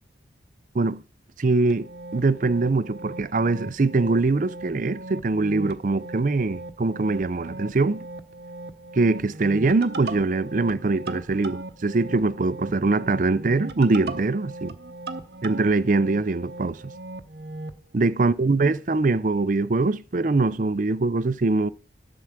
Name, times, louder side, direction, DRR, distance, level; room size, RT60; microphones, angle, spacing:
voice 1, 1.4-8.1 8.9-14.8 15.4-16.9 17.9-21.7, right 3 dB, 45° right, 0.5 m, -23 dB
sound 1, 1.7-17.8, right 2 dB, 65° right, 0.9 m, -38 dB
11.0 x 4.7 x 7.4 m
head